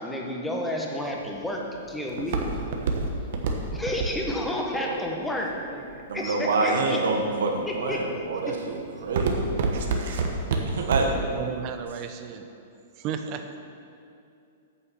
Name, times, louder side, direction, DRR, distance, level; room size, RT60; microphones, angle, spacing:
voice 1, 0.0-1.6 1.9-2.7 3.7-7.0 7.7-8.0 8.5-8.6, left 1 dB, 5° left, -1 dB, 1.3 m, -31 dB
Walk footsteps, 1.0-6.2 6.8-7.2 7.7-8.1 8.4-11.3 11.7-11.8, right 4 dB, 65° right, 1.3 m, -28 dB
voice 2, 6.1-9.9 10.6-11.1, right 3 dB, 80° right, 1 dB, 1.5 m, -27 dB
voice 3, 11.3-12.5 13.0-13.6, right 7 dB, 35° right, 7 dB, 0.8 m, -34 dB
8.9 x 6.7 x 7.1 m, 2.5 s
hypercardioid pair, 140°, 0 cm